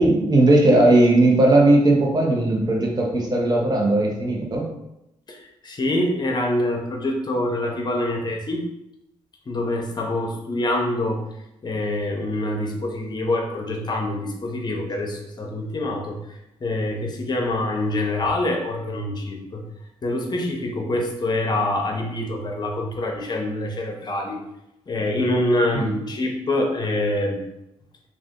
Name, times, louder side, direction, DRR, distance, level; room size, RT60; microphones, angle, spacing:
voice 1, 0.0-4.7 25.7-25.9, right 2 dB, 40° right, 0 dB, 0.8 m, -17 dB
voice 2, 5.3-8.6 9.5-11.2 11.6-19.6 20.0-24.4 24.9-27.4, left 1 dB, 40° left, 1 dB, 0.7 m, -25 dB
2.5 x 2.4 x 3.6 m, 0.86 s
cardioid pair, 75°, 11 cm